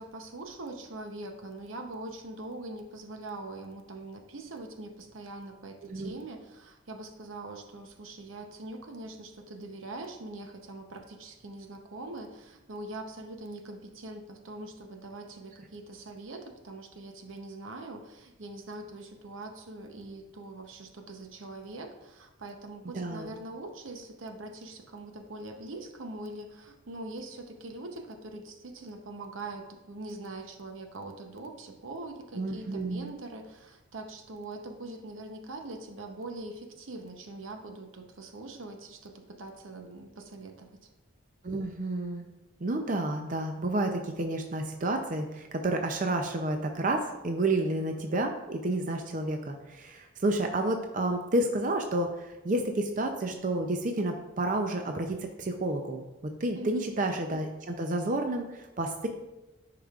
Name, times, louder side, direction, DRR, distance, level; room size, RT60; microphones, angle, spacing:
voice 1, 0.0-40.7 56.6-57.0, right 2 dB, 80° right, 5 dB, 0.8 m, -43 dB
voice 2, 5.8-6.2 22.9-23.3 32.4-33.1 41.4-42.3 42.6-56.0 56.4-59.1, right 2 dB, 40° right, 4 dB, 0.5 m, -30 dB
10.0 x 4.9 x 2.4 m, 1.0 s
head